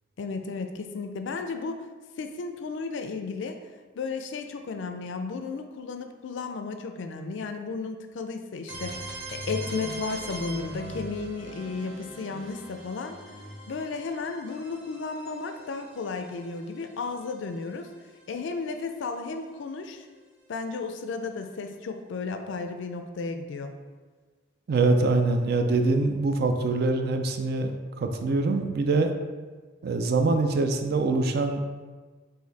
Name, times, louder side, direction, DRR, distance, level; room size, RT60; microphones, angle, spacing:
voice 1, 0.2-1.8 2.2-3.6 4.0-9.0 9.3-13.2 13.7-17.9 18.3-20.0 20.5-23.8, left 4 dB, 70° left, 6 dB, 0.4 m, -34 dB
sound 1, 8.7-18.4, right 2 dB, 75° right, 0.8 m, -41 dB
voice 2, 24.7-27.7 28.0-29.1 29.8-31.6, right 3 dB, 55° right, 6 dB, 0.4 m, -24 dB
4.1 x 2.6 x 4.0 m, 1.4 s
head